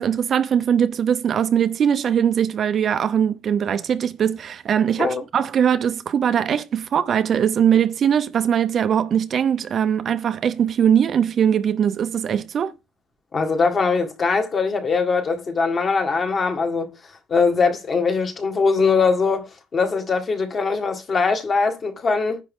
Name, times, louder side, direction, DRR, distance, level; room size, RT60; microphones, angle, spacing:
voice 1, 0.0-12.7, right 8 dB, 35° right, 0.7 m, -21 dB
voice 2, 13.3-16.9 17.3-22.4, left 4 dB, 30° left, 1.9 m, -21 dB
10.5 x 7.3 x 3.7 m
cardioid pair, 150°, 0 cm